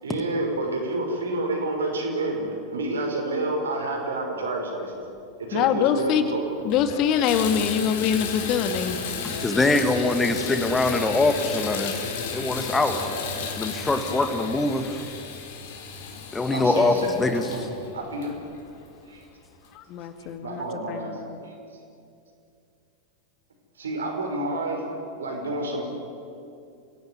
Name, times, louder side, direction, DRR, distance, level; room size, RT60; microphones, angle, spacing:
voice 1, 0.0-4.9 5.4-6.5 10.1-10.4 12.7-13.2 16.5-18.3 19.1-19.2 20.2-21.2 21.4-21.5 23.8-24.9 25.2-25.8, right 2 dB, 70° right, 2 dB, 5.8 m, -29 dB
voice 2, 5.5-6.2 6.7-8.9 19.9-21.0, left 8 dB, 40° left, 9 dB, 1.9 m, -24 dB
Water tap faucet / Bathtub (filling or washing), 6.0-6.1 6.6-19.0 19.6-19.7 20.3-20.4, left 5 dB, 55° left, 4.0 m, -34 dB
voice 3, 9.2-12.0 12.3-13.0 13.6-15.0 16.3-17.5, left 2 dB, 10° left, 7 dB, 1.9 m, -23 dB
29.5 x 17.5 x 9.6 m, 2.5 s
figure-of-eight pair, 90°, 0 cm